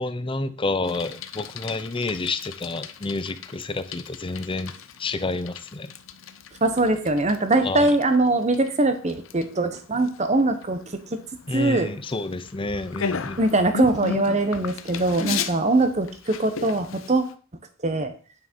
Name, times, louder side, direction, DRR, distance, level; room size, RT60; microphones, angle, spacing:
voice 1, 0.0-5.9 7.6-8.0 11.5-13.4, left 3 dB, 25° left, 13 dB, 0.6 m, -29 dB
Bicycle, 0.8-17.3, left 6 dB, 70° left, 0.7 m, -36 dB
voice 2, 6.6-11.2 11.5-11.9 13.4-17.2 17.8-18.1, right 2 dB, 35° right, 8 dB, 1.1 m, -22 dB
9.0 x 6.4 x 4.5 m, 0.41 s
head